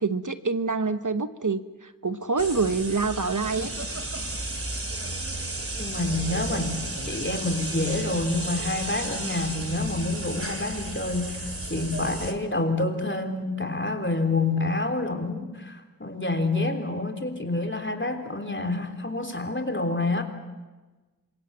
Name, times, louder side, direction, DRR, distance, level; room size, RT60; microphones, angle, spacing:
voice 1, 0.0-3.7, right 4 dB, 55° right, 10 dB, 1.2 m, -26 dB
sound 1, 2.4-12.3, right 2 dB, 35° right, 3.1 m, -33 dB
voice 2, 5.8-20.2, left 2 dB, 30° left, 5 dB, 3.5 m, -28 dB
27.0 x 24.0 x 7.5 m, 1.2 s
wide cardioid pair, 45°, 37 cm